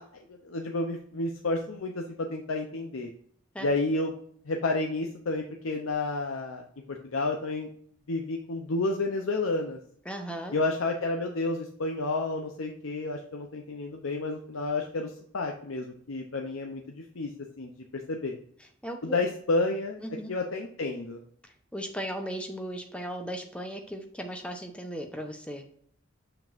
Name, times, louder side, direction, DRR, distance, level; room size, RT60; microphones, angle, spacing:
voice 1, 0.0-3.1 3.6-4.1 4.4-7.7 8.1-9.8 10.5-17.3 17.6-18.4 19.0-20.0 20.3-21.2, left 2 dB, 85° left, 3 dB, 0.7 m, -31 dB
voice 2, 10.1-10.6 18.8-19.2 20.0-20.3 21.7-25.6, equal, 5° left, 4 dB, 0.8 m, -36 dB
6.9 x 5.9 x 2.6 m, 0.62 s
head